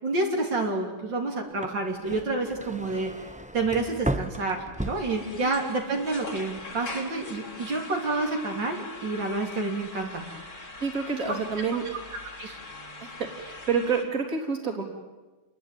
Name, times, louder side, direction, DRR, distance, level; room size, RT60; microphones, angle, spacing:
voice 1, 0.0-3.1 3.5-10.2 11.3-11.4 12.4-12.6, right 3 dB, 75° right, 1 dB, 4.0 m, -29 dB
sound 1, 1.5-5.8 6.1-6.7, right 1 dB, 5° right, 0.8 m, -35 dB
sound 2, 4.8-14.0, left 3 dB, 50° left, 3.8 m, -42 dB
voice 2, 10.8-11.8 13.0-14.8, right 5 dB, 45° right, 2 dB, 4.0 m, -28 dB
29.5 x 22.0 x 9.3 m, 1.2 s
omnidirectional pair, 2.0 m